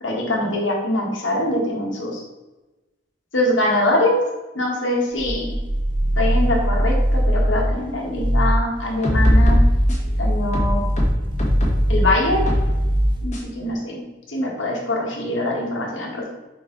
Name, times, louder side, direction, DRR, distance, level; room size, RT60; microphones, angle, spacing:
voice 1, 0.0-2.2 3.3-4.2 4.5-5.5 6.2-9.6 10.2-10.8 11.9-12.4 13.2-14.0 14.3-16.3, left 1 dB, 75° left, -1 dB, 1.6 m, -23 dB
sound 1, 5.1-7.8 8.1-8.6 9.1-13.3, equal, 25° right, 0.6 m, -21 dB
sound 2, 8.8-10.1 10.5-11.9 12.5-12.7 13.3-13.4, equal, 40° left, 1.5 m, -20 dB
5.3 x 4.5 x 3.9 m, 1.1 s
head